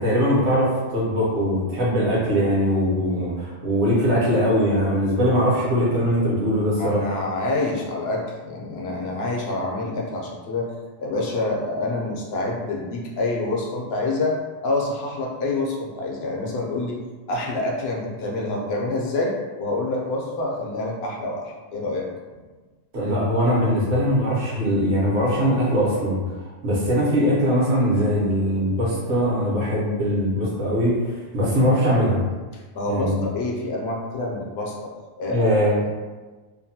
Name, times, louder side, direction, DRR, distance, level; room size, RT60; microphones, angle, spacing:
voice 1, 0.0-7.0 22.9-26.3 26.6-32.2 32.8-33.2 35.3-35.8, equal, 70° right, -6 dB, 1.2 m, -21 dB
voice 2, 6.8-10.7 11.0-17.0 17.3-22.1 32.5-34.9 35.2-35.4, left 2 dB, 65° left, -2 dB, 0.8 m, -27 dB
2.8 x 2.1 x 2.7 m, 1.3 s
omnidirectional pair, 1.2 m